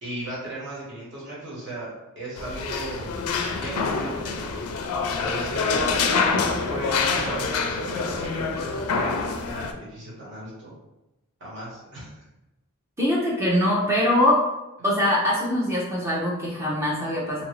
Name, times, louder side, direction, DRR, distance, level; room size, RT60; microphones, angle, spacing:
voice 1, 0.0-3.2 3.6-4.5 5.2-6.1 6.3-10.7 11.4-12.2, right 1 dB, 55° right, -7 dB, 1.3 m, -36 dB
sound 1, 2.4-9.7, left 4 dB, 80° left, 0.4 m, -26 dB
voice 2, 13.0-14.5 14.8-17.4, left 1 dB, 10° right, -5 dB, 0.5 m, -22 dB
2.9 x 2.5 x 3.1 m, 0.97 s
head